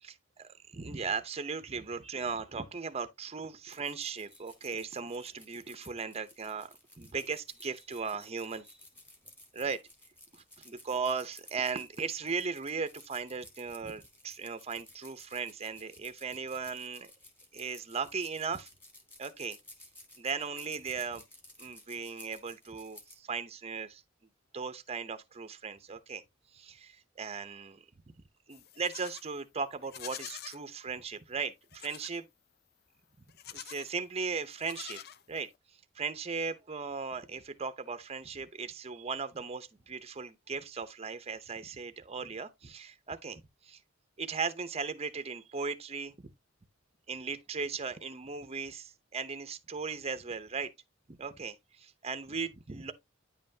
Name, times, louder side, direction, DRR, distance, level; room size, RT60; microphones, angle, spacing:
voice 1, 0.0-8.8 9.5-9.8 10.3-17.1 17.5-18.7 19.2-19.6 20.2-21.2 21.6-24.0 24.5-26.2 26.5-27.8 28.5-32.2 33.5-35.0 35.3-35.5 35.9-43.8 44.2-46.1 47.1-50.7 51.1-52.9, right 5 dB, 30° right, 0.7 m, -37 dB
sound 1, 3.7-23.2, left 1 dB, 10° left, 2.2 m, -55 dB
Livestock farm animals working animals, 28.5-29.3 29.8-30.6 31.7-32.2 33.3-33.9 34.5-35.6, left 10 dB, 55° left, 0.5 m, -46 dB
9.7 x 5.5 x 2.7 m
head